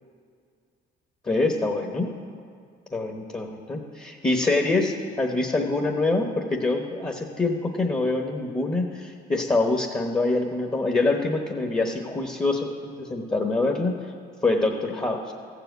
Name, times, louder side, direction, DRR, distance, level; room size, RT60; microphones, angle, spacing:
voice 1, 1.2-2.1 2.9-14.0 14.4-15.3, left 2 dB, 20° left, 2 dB, 1.1 m, -25 dB
15.0 x 5.0 x 8.0 m, 2.3 s
cardioid pair, 90°, 20 cm